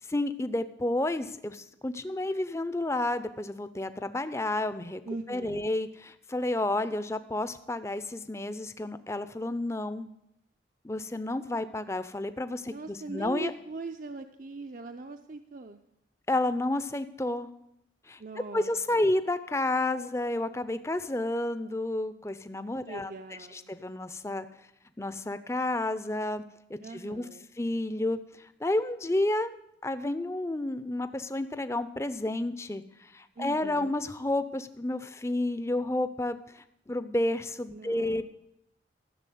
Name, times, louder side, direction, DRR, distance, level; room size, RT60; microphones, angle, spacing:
voice 1, 0.1-5.0 5.3-10.1 10.8-13.5 16.3-17.5 18.1-18.2 18.5-23.1 23.5-24.5 25.0-26.4 26.7-27.3 27.6-29.5 29.8-38.2, left 1 dB, 15° left, 12 dB, 0.6 m, -31 dB
voice 2, 5.1-5.7 12.7-15.8 18.2-19.1 22.8-23.7 26.8-27.5 33.4-33.9 37.7-38.2, right 3 dB, 50° right, 6 dB, 0.6 m, -41 dB
14.0 x 7.0 x 9.3 m, 0.79 s
head